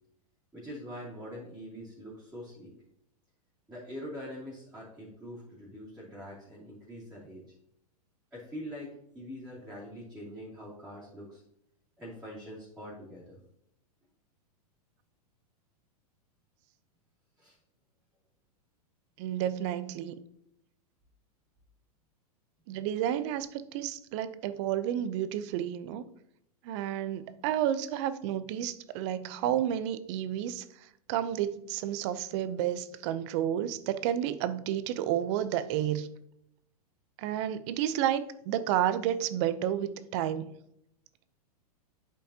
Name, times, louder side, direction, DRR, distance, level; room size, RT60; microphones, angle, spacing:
voice 1, 0.5-2.7 3.7-7.5 8.3-11.4 12.0-13.4 17.4-17.6, equal, 5° right, -10 dB, 2.7 m, -44 dB
voice 2, 19.2-20.2 22.7-26.0 26.6-30.6 31.1-36.1 37.2-40.5, right 11 dB, 45° right, 13 dB, 0.6 m, -31 dB
9.0 x 5.3 x 2.8 m, 0.75 s
hypercardioid pair, 120°, 20 cm